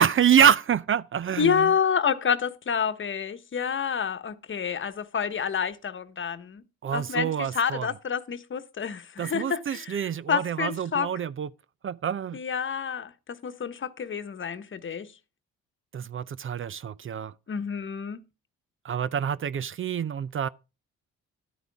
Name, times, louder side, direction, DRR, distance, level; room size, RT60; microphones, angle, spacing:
voice 1, 0.0-1.7 6.8-7.9 9.2-11.5 11.8-12.4 15.9-17.3 18.8-20.5, right 8 dB, 45° right, 0.6 m, -26 dB
voice 2, 1.4-6.6 6.9-10.0 10.3-11.1 12.3-15.1 17.5-18.2, left 7 dB, 40° left, 1.1 m, -28 dB
12.0 x 9.3 x 3.5 m
cardioid pair, 90°, 30 cm